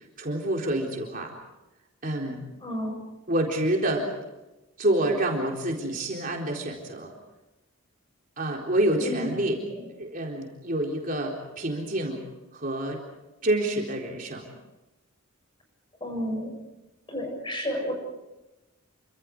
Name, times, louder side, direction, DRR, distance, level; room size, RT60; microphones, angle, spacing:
voice 1, 0.2-1.3 2.0-2.5 3.3-4.1 4.8-7.1 8.4-9.6 10.0-12.2 12.5-13.0 13.4-14.5, right 1 dB, 40° right, -1 dB, 4.0 m, -27 dB
voice 2, 2.6-2.9 9.0-9.3 9.8-9.9 16.0-16.5 17.1-17.9, left 1 dB, 20° left, 2 dB, 7.5 m, -31 dB
29.0 x 26.0 x 5.0 m, 1.0 s
head